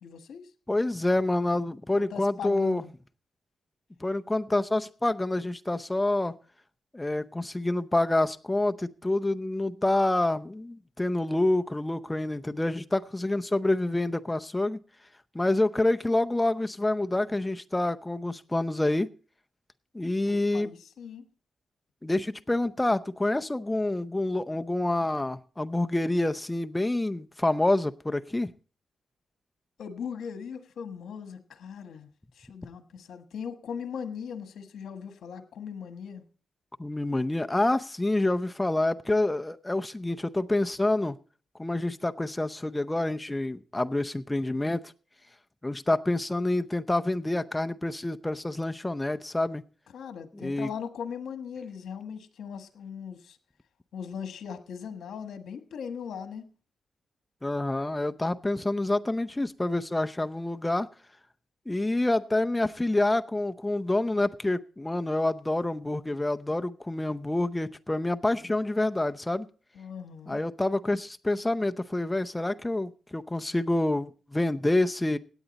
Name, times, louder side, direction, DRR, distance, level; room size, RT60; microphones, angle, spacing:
voice 1, 0.0-0.5 1.9-2.9 20.2-21.2 29.8-36.2 49.9-53.4 53.9-56.5 69.7-70.4, left 7 dB, 80° left, 8 dB, 1.3 m, -39 dB
voice 2, 0.7-2.8 4.0-6.3 6.9-14.8 15.3-19.1 19.9-20.7 22.0-28.5 36.8-41.2 41.6-44.9 45.6-49.6 50.4-50.7 57.4-60.9 61.7-69.5 70.3-75.2, left 2 dB, 10° left, 9 dB, 0.7 m, -27 dB
17.0 x 9.1 x 4.1 m, 0.40 s
wide cardioid pair, 120°, 0 cm